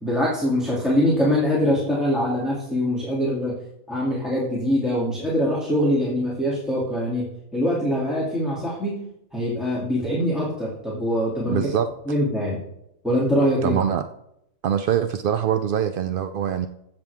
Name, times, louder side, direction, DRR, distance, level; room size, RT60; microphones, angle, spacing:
voice 1, 0.0-3.5 3.9-7.2 7.5-9.0 9.3-11.6 12.0-12.6 13.0-13.8, equal, ahead, -7 dB, 2.6 m, -23 dB
voice 2, 11.5-11.9 13.6-14.1 14.6-16.7, right 9 dB, 65° right, 9 dB, 0.5 m, -23 dB
15.0 x 7.7 x 3.5 m, 0.79 s
omnidirectional pair, 1.4 m